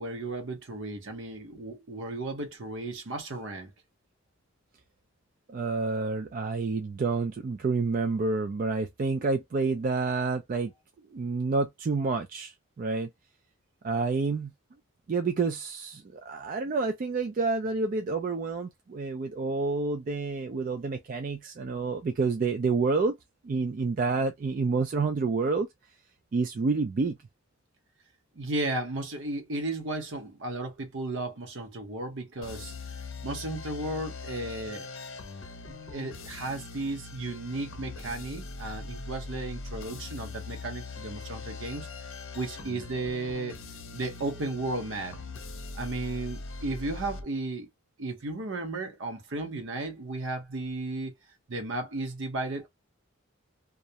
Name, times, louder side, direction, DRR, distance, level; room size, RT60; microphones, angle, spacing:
voice 1, 0.0-3.7 28.4-32.7 33.2-34.9 35.7-41.9 42.3-43.6 43.9-45.2 45.8-47.7 48.0-51.1 51.5-52.7, right 2 dB, 60° right, 0.8 m, -34 dB
voice 2, 5.5-10.7 11.1-13.1 13.8-14.5 15.1-23.2 23.4-25.7 26.3-27.2, right 4 dB, 40° right, 0.3 m, -28 dB
sound 1, 32.4-47.2, left 3 dB, 65° left, 0.6 m, -41 dB
2.4 x 2.0 x 2.7 m
head